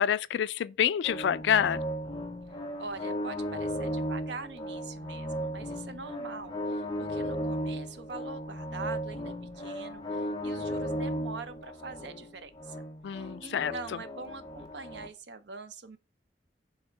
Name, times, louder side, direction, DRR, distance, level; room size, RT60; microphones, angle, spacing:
voice 1, 0.0-1.8 13.0-13.7, left 9 dB, 80° left, 0.3 m, -27 dB
sound 1, 1.0-15.1, equal, 25° left, 0.8 m, -36 dB
voice 2, 2.8-12.8 13.1-16.0, right 4 dB, 75° right, 0.7 m, -43 dB
6.5 x 3.5 x 4.4 m
head